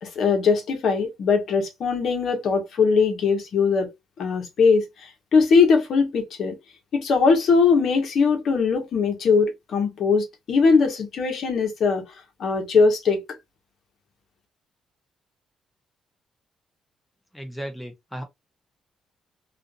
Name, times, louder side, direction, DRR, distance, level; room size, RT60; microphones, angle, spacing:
voice 1, 0.0-3.9 4.2-6.6 6.9-12.0 12.4-13.2, left 5 dB, 60° left, 0.9 m, -20 dB
voice 2, 17.3-18.2, equal, ahead, 0.5 m, -35 dB
2.5 x 2.4 x 2.5 m
cardioid pair, 140°, 0 cm